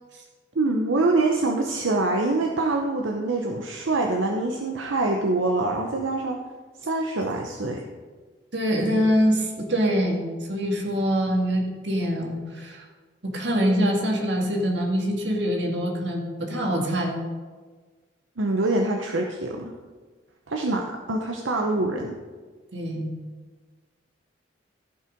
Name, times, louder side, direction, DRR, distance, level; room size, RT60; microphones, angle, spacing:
voice 1, 0.6-6.4 6.8-7.8 18.4-19.7 20.5-22.2, right 2 dB, 90° right, 1 dB, 0.8 m, -25 dB
voice 2, 8.5-12.9 13.2-17.2 22.7-23.1, equal, 65° right, 1 dB, 2.0 m, -24 dB
14.5 x 5.7 x 5.2 m, 1.4 s
head